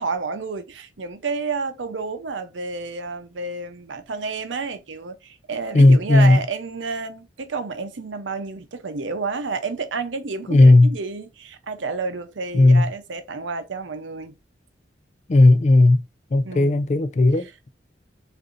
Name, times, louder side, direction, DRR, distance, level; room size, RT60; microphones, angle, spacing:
voice 1, 0.0-14.3 16.4-16.8 17.3-17.7, right 4 dB, 90° right, 0.7 m, -30 dB
voice 2, 5.7-6.4 10.5-10.9 12.5-12.8 15.3-16.0 16.3-17.7, left 2 dB, 40° left, 0.4 m, -14 dB
6.6 x 2.6 x 2.5 m
head